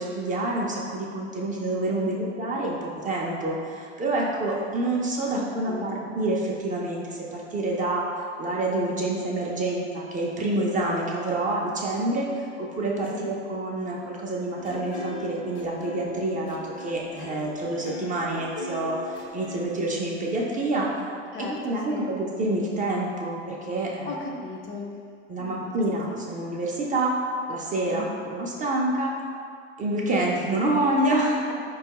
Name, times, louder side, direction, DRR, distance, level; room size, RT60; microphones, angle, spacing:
voice 1, 0.0-8.0 8.4-20.9 21.4-24.1 25.3-27.1 27.5-28.0 28.3-29.1 29.8-31.5, right 2 dB, 20° right, -3 dB, 0.4 m, -27 dB
voice 2, 2.0-2.4 5.3-6.1 13.1-13.3 21.3-22.1 24.0-25.0 25.4-26.6 27.9-28.3, left 3 dB, 35° left, -1 dB, 0.4 m, -38 dB
sound 1, 14.5-20.3, left 2 dB, 55° left, 0.8 m, -38 dB
4.3 x 2.3 x 2.8 m, 2.2 s
hypercardioid pair, 95°, 36 cm